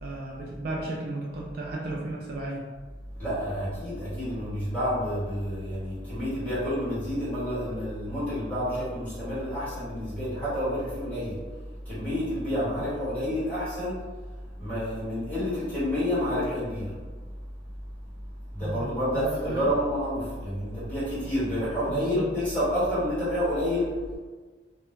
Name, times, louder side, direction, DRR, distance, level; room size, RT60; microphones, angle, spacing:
voice 1, 0.0-2.6 18.6-19.8 21.9-22.4, right 2 dB, 55° right, -2 dB, 0.3 m, -34 dB
voice 2, 3.2-11.4 11.8-14.0 14.6-16.9 18.5-23.9, equal, 10° left, -12 dB, 1.2 m, -29 dB
2.2 x 2.0 x 3.0 m, 1.4 s
head